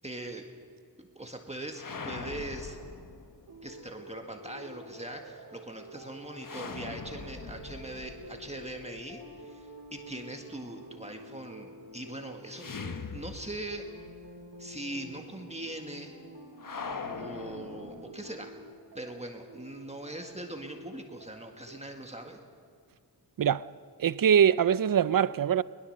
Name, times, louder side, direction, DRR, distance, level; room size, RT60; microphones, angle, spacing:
voice 1, 0.0-0.4 1.0-2.8 3.6-12.6 13.1-13.9 14.6-16.2 17.2-18.5 18.9-22.4, right 1 dB, 15° right, 1.7 m, -41 dB
sound 1, 1.7-3.7 6.4-9.4 12.5-14.0 14.2-14.3 16.6-18.4, left 5 dB, 50° left, 1.2 m, -42 dB
sound 2, 3.5-21.8, right 1 dB, 85° right, 4.3 m, -49 dB
voice 2, 24.0-25.6, right 8 dB, 55° right, 0.5 m, -23 dB
22.5 x 20.0 x 6.7 m
wide cardioid pair, 90°, 40 cm